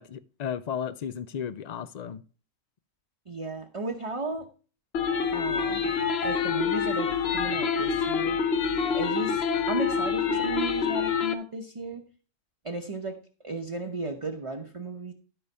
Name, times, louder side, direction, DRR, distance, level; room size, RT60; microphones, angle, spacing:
voice 1, 0.0-2.2, left 8 dB, 75° left, 0.3 m, -34 dB
voice 2, 3.3-4.5 5.3-5.9 6.2-8.4 8.9-12.0 12.6-15.1, right 2 dB, 30° right, 0.9 m, -35 dB
sound 1, 4.9-11.3, left 6 dB, 55° left, 1.0 m, -26 dB
12.5 x 4.9 x 5.5 m
omnidirectional pair, 1.4 m